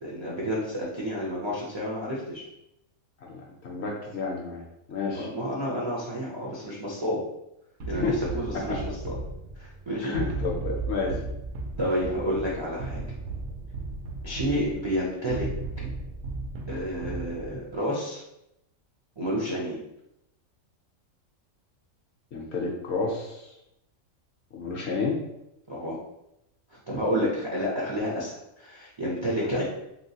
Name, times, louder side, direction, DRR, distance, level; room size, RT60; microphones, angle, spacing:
voice 1, 0.0-2.4 5.1-7.2 7.8-9.2 9.6-10.1 11.8-13.0 14.2-15.5 15.8-15.9 16.7-18.2 19.2-19.9 25.7-26.0 26.7-29.6, equal, 45° right, -6 dB, 0.3 m, -30 dB
voice 2, 3.2-5.3 7.9-8.2 8.5-8.6 10.0-11.1 22.3-23.5 24.5-25.2 29.4-29.5, left 4 dB, 65° left, -1 dB, 0.8 m, -30 dB
sound 1, 7.8-17.7, right 3 dB, 70° right, 0.9 m, -35 dB
3.1 x 2.9 x 2.8 m, 0.85 s
omnidirectional pair, 1.5 m